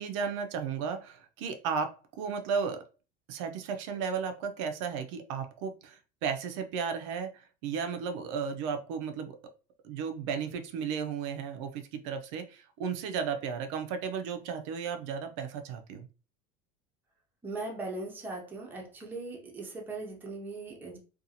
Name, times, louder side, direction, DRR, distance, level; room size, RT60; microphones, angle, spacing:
voice 1, 0.0-2.8 3.3-9.4 9.8-16.1, right 6 dB, 70° right, 0.5 m, -34 dB
voice 2, 17.4-21.0, right 2 dB, 10° right, 0.5 m, -39 dB
2.6 x 2.3 x 2.7 m
cardioid pair, 165°, 16 cm